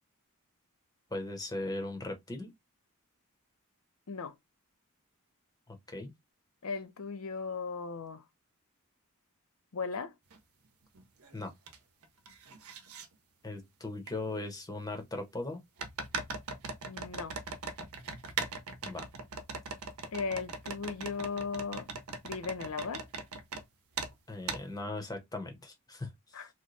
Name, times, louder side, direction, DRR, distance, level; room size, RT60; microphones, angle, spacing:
voice 1, 1.1-2.5 5.7-6.1 11.3-11.5 13.4-15.6 18.8-19.1 24.3-26.4, left 2 dB, 15° left, 0.8 m, -39 dB
voice 2, 6.6-8.2 9.7-10.1 16.9-17.3 20.1-21.9 22.2-23.1 26.3-26.5, left 5 dB, 70° left, 0.6 m, -37 dB
sound 1, 10.3-10.4 11.0-11.8 12.0-13.1 14.1-14.2 15.8-23.6 24.0-24.1 24.5-24.6, right 4 dB, 75° right, 0.7 m, -40 dB
3.0 x 2.2 x 3.9 m
head